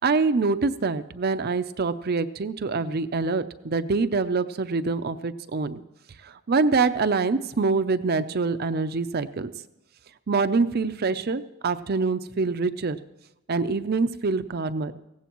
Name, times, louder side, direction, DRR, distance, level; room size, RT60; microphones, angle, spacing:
voice 1, 0.0-5.8 6.2-9.5 10.3-13.0 13.5-14.9, right 4 dB, 50° right, 11 dB, 0.6 m, -25 dB
18.5 x 16.0 x 3.0 m, 0.90 s
head